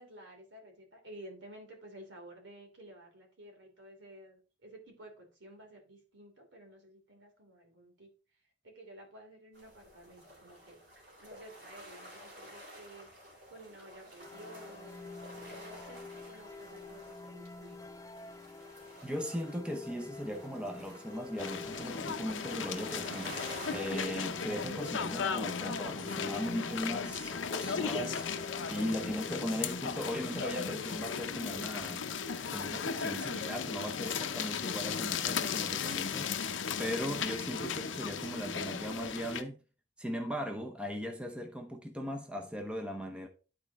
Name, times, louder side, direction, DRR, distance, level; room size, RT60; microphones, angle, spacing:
voice 1, 0.0-10.8 11.2-17.8, right 1 dB, 80° right, 3.0 m, -53 dB
sound 1, 9.5-24.0, equal, 55° right, 4.0 m, -51 dB
sound 2, 14.2-29.8, left 4 dB, 15° left, 0.3 m, -48 dB
voice 2, 19.0-23.4 23.7-28.3 28.7-32.1 32.5-36.3 36.8-39.6 40.0-43.3, equal, 5° right, 0.8 m, -38 dB
sound 3, 21.4-39.4, left 6 dB, 90° left, 0.7 m, -36 dB
11.5 x 4.4 x 3.5 m
head